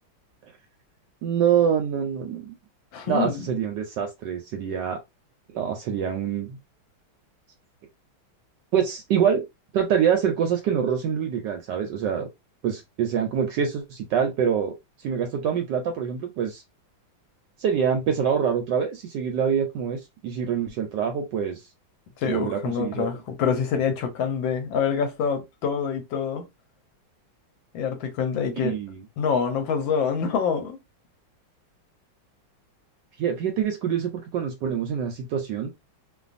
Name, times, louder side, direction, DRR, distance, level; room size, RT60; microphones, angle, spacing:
voice 1, 1.2-2.5 3.1-5.0 5.5-6.6 8.7-9.4 9.7-12.3 12.6-14.7 15.0-16.6 17.6-21.6 22.2-23.1 28.5-29.0 33.2-35.7, right 8 dB, 75° right, 1.1 m, -25 dB
voice 2, 2.9-3.5 22.2-26.4 27.7-28.7 29.2-30.8, left 6 dB, 75° left, 1.4 m, -26 dB
3.2 x 2.2 x 2.5 m
omnidirectional pair, 2.3 m